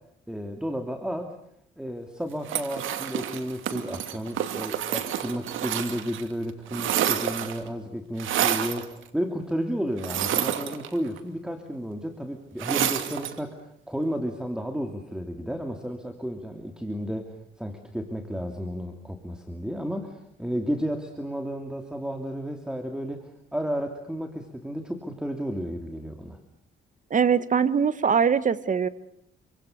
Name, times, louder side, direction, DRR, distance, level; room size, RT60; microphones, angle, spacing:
voice 1, 0.3-1.3 1.8-17.3 17.6-26.4, equal, 5° right, 5 dB, 3.0 m, -32 dB
sound 1, 2.5-6.2 6.5-7.7 8.2-8.9 10.0-11.2 12.6-13.4, right 10 dB, 80° right, 2.7 m, -28 dB
voice 2, 27.1-28.9, right 6 dB, 40° right, 14 dB, 1.7 m, -22 dB
28.0 x 25.0 x 6.7 m, 0.71 s
cardioid pair, 90°, 20 cm